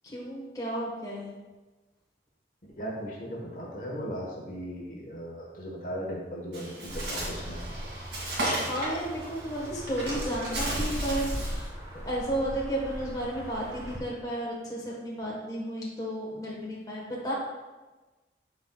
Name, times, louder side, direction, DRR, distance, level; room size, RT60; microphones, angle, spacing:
voice 1, 0.0-1.3 8.6-17.3, right 1 dB, 20° left, -5 dB, 1.3 m, -33 dB
voice 2, 2.8-7.6, equal, 45° left, -3 dB, 1.3 m, -37 dB
Bird, 6.5-11.6, right 1 dB, 80° right, 2.2 m, -35 dB
sound 1, 6.9-14.0, equal, 20° right, 1.2 m, -38 dB
12.0 x 4.4 x 2.3 m, 1.2 s
head